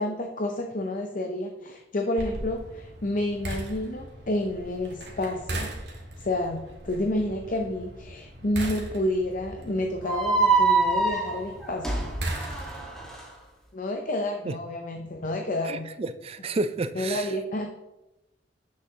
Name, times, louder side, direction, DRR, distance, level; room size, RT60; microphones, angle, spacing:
voice 1, 0.0-12.1 13.7-15.9 16.9-17.7, left 1 dB, 45° left, 3 dB, 0.6 m, -30 dB
sound 1, 2.2-13.1, right 1 dB, 60° right, 1.7 m, -39 dB
sound 2, 10.0-13.2, right 4 dB, 5° left, 1.5 m, -25 dB
voice 2, 15.6-17.4, right 3 dB, 30° right, 12 dB, 0.4 m, -31 dB
9.4 x 6.5 x 2.9 m, 0.96 s
head